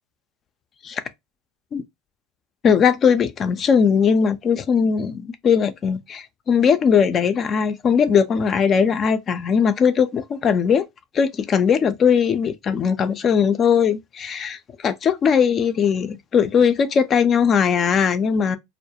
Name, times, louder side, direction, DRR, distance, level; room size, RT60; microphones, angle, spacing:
voice 1, 2.6-10.8 11.1-18.6, left 6 dB, 40° left, 0.4 m, -19 dB
2.2 x 2.1 x 2.7 m
supercardioid pair, 95°, 0 cm